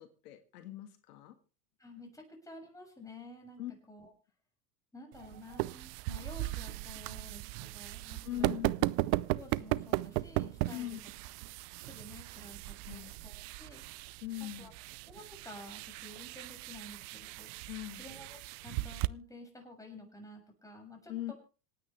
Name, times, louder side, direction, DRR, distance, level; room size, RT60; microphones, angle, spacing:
voice 1, 0.0-1.3 3.6-3.7 8.2-9.0 10.7-11.0 12.9-13.1 14.2-14.7 17.7-18.0 21.1-21.3, left 14 dB, 80° left, 7 dB, 2.0 m, -41 dB
voice 2, 1.8-3.6 3.9-4.1 4.9-8.6 9.4-11.0 11.8-13.8 14.6-14.7 15.1-17.5 18.0-21.3, left 2 dB, 5° left, 1 dB, 6.8 m, -51 dB
sound 1, 5.1-19.1, right 21 dB, 55° right, 0.6 m, -37 dB
26.5 x 9.5 x 3.3 m, 0.35 s
supercardioid pair, 110°, 46 cm